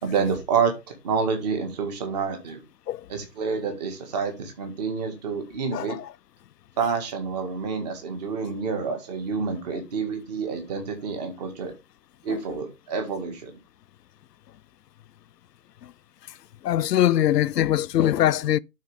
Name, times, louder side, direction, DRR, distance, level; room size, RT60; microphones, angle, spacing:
voice 1, 0.0-0.7 1.0-2.6 3.1-6.0 6.8-11.7 12.2-13.6, right 5 dB, 25° right, 1.9 m, -28 dB
voice 2, 5.7-6.1 12.3-12.4 15.8-15.9 16.6-18.6, left 12 dB, 70° left, 0.6 m, -22 dB
11.5 x 4.6 x 3.5 m
hypercardioid pair, 155°, 50 cm